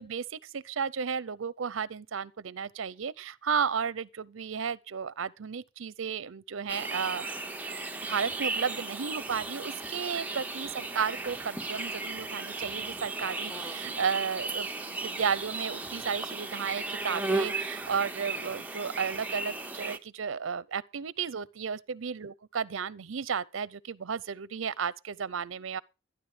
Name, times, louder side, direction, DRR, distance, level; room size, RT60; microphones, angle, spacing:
voice 1, 0.0-7.3 8.1-25.8, right 6 dB, 75° right, 0.6 m, -33 dB
sound 1, 6.7-20.0, right 3 dB, 10° right, 0.9 m, -35 dB
13.5 x 10.0 x 4.9 m
head